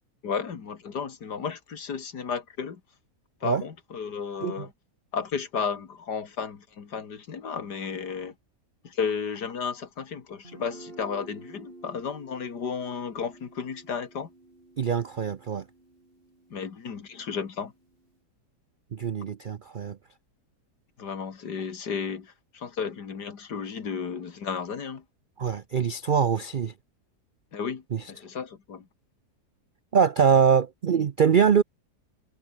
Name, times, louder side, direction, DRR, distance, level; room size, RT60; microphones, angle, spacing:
voice 1, 0.2-2.8 3.4-4.7 5.1-8.3 8.8-14.3 16.5-17.7 21.0-25.0 27.5-28.9, left 6 dB, 80° left, 2.6 m, -33 dB
Guitar, 10.4-18.1, right 2 dB, 35° right, 4.6 m, -51 dB
voice 2, 14.8-15.6 18.9-20.0 25.4-26.7 27.9-28.0 29.9-31.6, right 7 dB, 75° right, 0.4 m, -23 dB
omnidirectional pair, 1.8 m